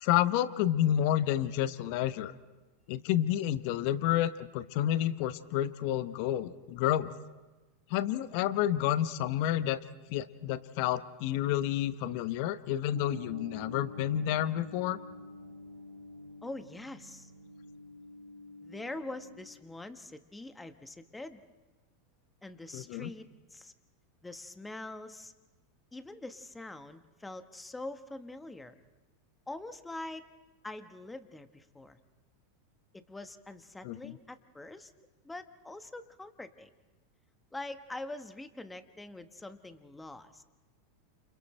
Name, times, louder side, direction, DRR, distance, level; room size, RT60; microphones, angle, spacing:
voice 1, 0.0-2.3 2.9-7.1 7.9-9.8 10.1-15.0 22.7-23.1 33.8-34.2, left 12 dB, 60° left, 14 dB, 0.9 m, -30 dB
sound 1, 12.9-19.5, left 1 dB, 75° right, 3.1 m, -48 dB
voice 2, 16.4-17.3 18.6-21.4 22.4-23.7 24.2-25.3 25.9-28.8 29.5-30.3 30.6-32.0 32.9-34.9 35.2-36.7 37.5-40.4, left 2 dB, 10° left, 9 dB, 1.4 m, -44 dB
30.0 x 28.5 x 3.3 m, 1.2 s
hypercardioid pair, 95°, 0 cm